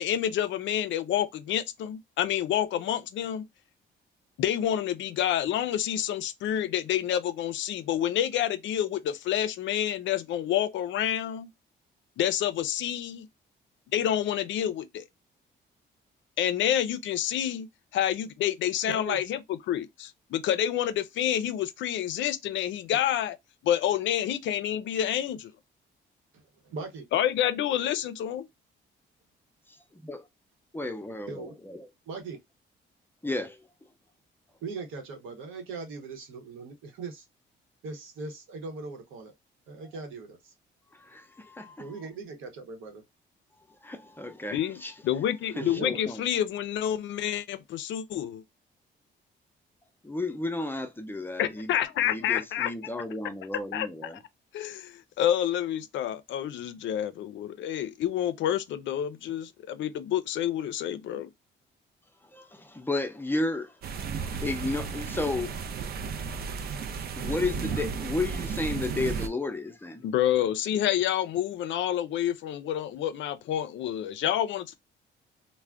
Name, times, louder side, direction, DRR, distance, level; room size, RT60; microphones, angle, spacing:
voice 1, 0.0-3.4 4.4-11.5 12.2-13.3 13.9-15.0 16.4-17.7 17.9-23.4 23.6-25.5 27.1-28.5 44.5-48.4 51.4-52.7 53.7-53.9 54.5-61.3 70.0-74.8, left 11 dB, 70° left, 0.4 m, -28 dB
voice 2, 18.9-19.2 26.6-27.1 31.3-31.6 32.1-32.4 34.6-37.3 37.8-39.3 39.7-40.5 41.8-43.0 45.5-46.0, right 4 dB, 85° right, 0.9 m, -39 dB
voice 3, 29.9-30.2 30.7-31.9 33.2-33.6 40.9-41.9 43.8-44.9 45.6-46.2 50.0-51.7 52.0-54.2 62.3-63.7 64.2-65.6 67.0-70.0, left 2 dB, 10° left, 0.5 m, -33 dB
sound 1, 63.8-69.3, right 6 dB, 50° right, 0.5 m, -33 dB
2.4 x 2.1 x 3.3 m
cardioid pair, 90°, 20 cm